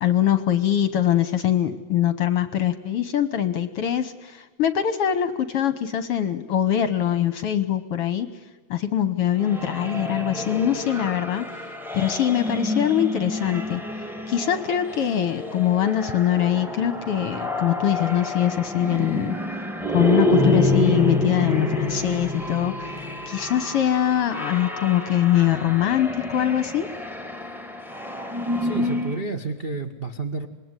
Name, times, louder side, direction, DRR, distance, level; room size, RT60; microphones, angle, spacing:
voice 1, 0.0-8.3 8.7-11.6 11.9-13.8 14.3-19.3 19.9-22.9 23.3-26.9, left 11 dB, 60° left, 12 dB, 1.7 m, -23 dB
sound 1, 9.4-29.2, left 1 dB, ahead, 1.3 m, -28 dB
voice 2, 28.6-30.5, right 3 dB, 35° right, 9 dB, 0.8 m, -30 dB
26.5 x 21.0 x 9.7 m, 1.3 s
omnidirectional pair, 3.6 m